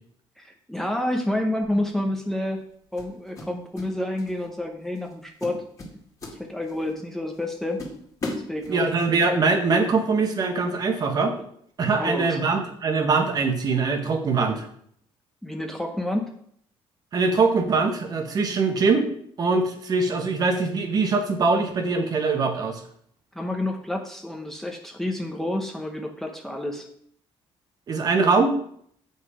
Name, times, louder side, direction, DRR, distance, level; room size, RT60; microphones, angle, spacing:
voice 1, 0.4-2.6 2.9-5.6 6.4-7.8 8.5-9.2 11.9-12.4 15.4-16.3 23.3-26.9, left 1 dB, 5° left, 3 dB, 0.8 m, -29 dB
sound 1, 1.6-1.9 3.0-3.9 4.2-4.5 4.9-5.1 5.4-6.9 7.3-7.4 7.8-9.1, left 2 dB, 30° left, 2.0 m, -36 dB
voice 2, 8.7-11.3 11.8-14.7 17.1-19.1 19.4-22.8 27.9-28.5, right 4 dB, 40° right, 5 dB, 1.2 m, -22 dB
7.9 x 5.6 x 4.9 m, 0.65 s
cardioid pair, 145°, 10 cm